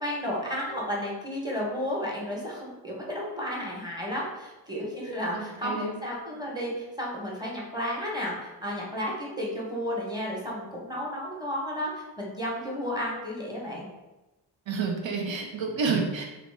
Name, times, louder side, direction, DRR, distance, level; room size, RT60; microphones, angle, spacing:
voice 1, 0.0-13.9, equal, 10° right, -4 dB, 1.0 m, -32 dB
voice 2, 5.3-6.0 14.7-16.3, right 4 dB, 70° right, 2 dB, 0.7 m, -29 dB
2.8 x 2.0 x 3.3 m, 1.0 s
cardioid pair, 45°, 48 cm